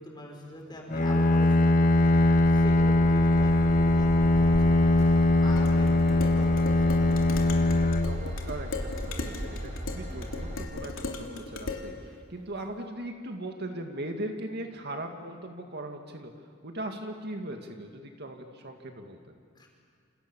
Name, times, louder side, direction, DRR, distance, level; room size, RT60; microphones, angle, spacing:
voice 1, 0.0-7.2 19.5-19.7, left 1 dB, 20° left, 0 dB, 5.8 m, -44 dB
Bowed string instrument, 0.9-8.9, left 2 dB, 40° left, 1.1 m, -22 dB
Train / Engine, 1.9-10.6, equal, 35° right, 6.0 m, -37 dB
Dishes pots and pans, 5.6-11.9, left 3 dB, 90° left, 3.2 m, -38 dB
voice 2, 8.1-16.3 16.6-19.4, right 1 dB, 55° right, 4 dB, 2.2 m, -39 dB
28.0 x 28.0 x 7.1 m, 2.3 s
head